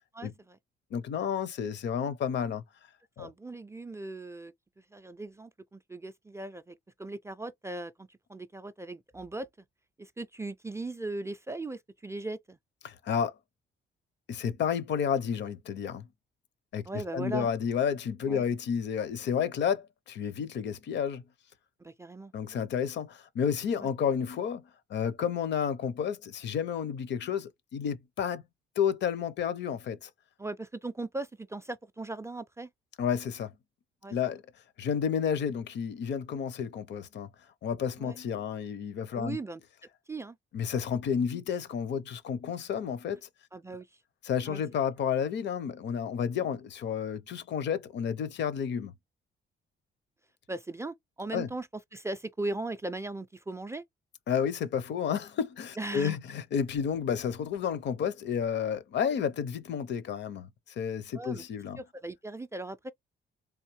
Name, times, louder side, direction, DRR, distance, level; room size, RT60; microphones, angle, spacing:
voice 1, 0.1-0.6 3.2-4.5 4.9-9.5 10.0-12.6 16.9-17.5 18.3-18.4 21.8-22.3 23.8-23.9 30.4-32.7 34.0-34.2 38.0-38.2 39.1-39.6 40.1-40.4 43.5-43.9 44.5-44.6 50.5-51.7 51.9-53.8 55.8-56.2 61.1-61.4 61.8-62.9, right 2 dB, 15° right, 0.3 m, -38 dB
voice 2, 0.9-2.6 3.2-3.3 12.8-13.3 14.3-16.1 16.7-21.2 22.3-24.6 24.9-28.4 28.8-30.1 33.0-33.5 34.1-34.4 34.8-37.3 37.6-39.4 40.5-43.3 44.2-48.9 51.3-51.5 54.3-60.5 60.8-61.8, left 7 dB, 65° left, 0.7 m, -31 dB
3.5 x 2.7 x 3.0 m
cardioid pair, 90°, 20 cm